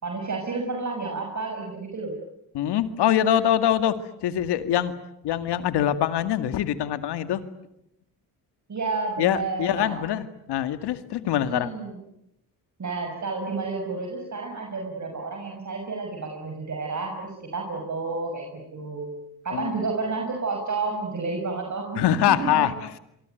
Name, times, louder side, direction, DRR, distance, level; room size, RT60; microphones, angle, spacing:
voice 1, 0.0-2.2 8.7-10.0 11.2-12.0 12.8-19.1 19.4-22.7, right 4 dB, 45° right, 2 dB, 6.5 m, -31 dB
voice 2, 2.5-4.9 5.2-7.4 9.2-11.7 19.5-19.9 22.0-22.7, left 11 dB, 80° left, 11 dB, 2.1 m, -24 dB
26.5 x 24.0 x 9.3 m, 0.81 s
supercardioid pair, 60°, 40 cm